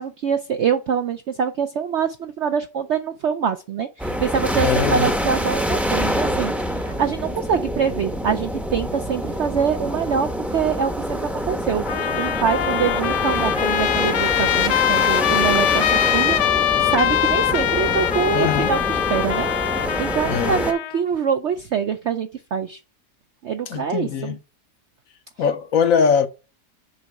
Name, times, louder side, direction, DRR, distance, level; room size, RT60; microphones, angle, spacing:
voice 1, 0.0-19.5 20.0-22.8 23.4-24.4, right 7 dB, 70° right, 0.6 m, -25 dB
sound 1, 4.0-20.7, equal, ahead, 0.6 m, -26 dB
voice 2, 4.6-5.1 18.3-18.7 20.2-20.6 23.7-24.3 25.4-26.3, left 6 dB, 65° left, 1.0 m, -21 dB
Trumpet, 11.9-21.0, left 12 dB, 85° left, 1.3 m, -22 dB
6.9 x 5.3 x 4.8 m
omnidirectional pair, 1.8 m